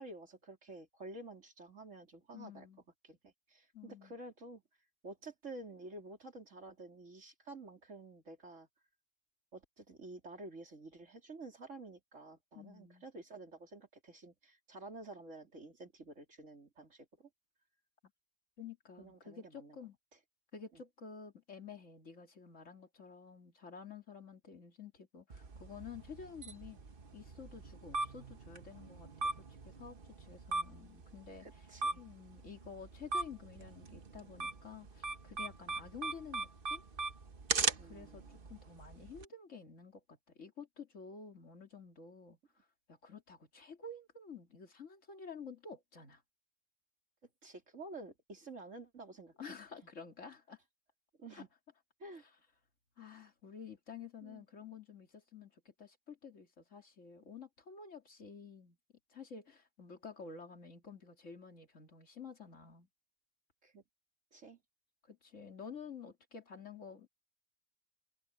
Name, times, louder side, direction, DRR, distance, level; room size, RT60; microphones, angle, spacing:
voice 1, 0.0-2.7 3.0-4.6 5.0-8.7 9.5-17.3 19.0-19.8 20.7-20.8 31.4-32.0 37.8-38.4 47.4-49.4 51.2-51.5 52.0-52.3 54.2-54.4 63.6-63.8 64.3-64.6, right 2 dB, 85° right, 3.9 m, -50 dB
voice 2, 2.3-2.8 3.7-4.1 12.5-13.0 18.6-20.0 20.5-26.8 27.1-31.5 32.0-36.8 37.8-38.2 38.5-46.2 49.4-50.6 51.3-51.4 53.0-58.8 59.1-62.9 65.0-67.1, left 5 dB, 85° left, 2.9 m, -51 dB
sound 1, 25.3-39.2, right 3 dB, 50° right, 1.3 m, -40 dB
omnidirectional pair, 1.3 m